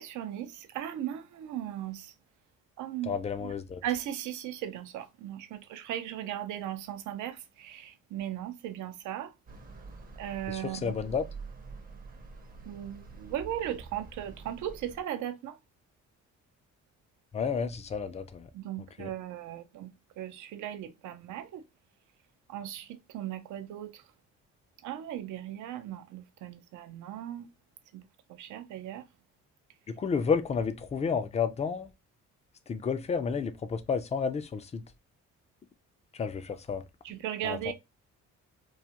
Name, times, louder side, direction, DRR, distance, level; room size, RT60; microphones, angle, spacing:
voice 1, 0.0-2.1 2.8-3.1 3.4-3.5 3.8-9.3 10.2-11.0 12.7-15.6 18.5-21.6 22.5-24.0 24.8-27.5 27.9-29.0 37.0-37.7, right 11 dB, 80° right, 0.5 m, -37 dB
voice 2, 3.0-3.8 10.5-11.2 17.3-18.5 19.0-19.1 29.9-31.9 32.7-34.8 36.1-36.8 37.4-37.7, left 6 dB, 25° left, 0.4 m, -31 dB
sound 1, 9.5-15.0, right 4 dB, 30° right, 0.6 m, -47 dB
2.4 x 2.3 x 2.8 m
cardioid pair, 90°, 30 cm